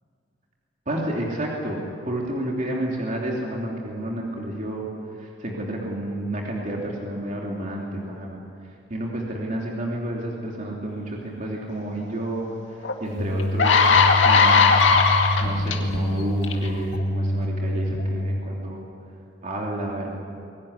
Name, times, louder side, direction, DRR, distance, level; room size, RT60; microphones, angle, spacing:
voice 1, 0.9-4.9 5.2-8.4 8.9-12.5 13.0-13.9 14.2-14.7 15.4-18.8 19.4-20.1, right 1 dB, 45° right, -2 dB, 3.2 m, -30 dB
sound 1, 12.8-12.9 13.4-15.8 16.4-16.7, left 5 dB, 75° left, 2.2 m, -17 dB
sound 2, 13.2-18.4, equal, 55° left, 2.3 m, -26 dB
23.0 x 17.5 x 9.9 m, 2.6 s
head